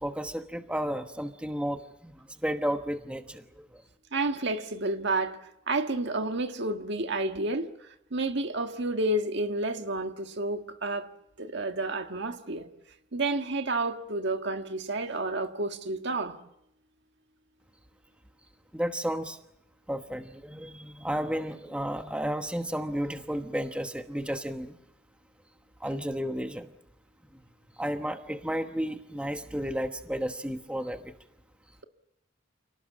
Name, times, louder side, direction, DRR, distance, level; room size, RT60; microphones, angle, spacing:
voice 1, 0.0-3.8 18.7-19.4 19.9-24.7 25.8-26.7 27.3-27.4 27.8-31.1, equal, 5° right, 1.1 m, -32 dB
voice 2, 4.1-5.4 5.7-7.7 8.1-11.1 11.4-12.7 13.1-16.4, right 2 dB, 60° right, 1.8 m, -30 dB
28.5 x 18.5 x 7.4 m
head